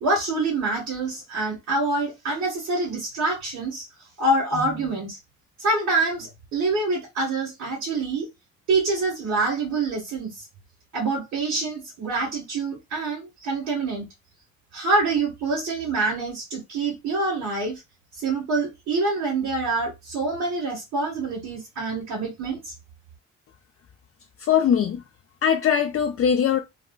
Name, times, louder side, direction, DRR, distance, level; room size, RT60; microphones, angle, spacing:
voice 1, 0.0-3.9 4.2-5.2 5.6-8.3 8.7-10.4 10.9-14.1 14.7-17.8 18.1-22.7, right 3 dB, 65° right, 1.7 m, -26 dB
voice 2, 24.4-25.0 25.4-26.6, left 8 dB, 50° left, 0.5 m, -21 dB
3.6 x 2.1 x 2.4 m
cardioid pair, 90°, 30 cm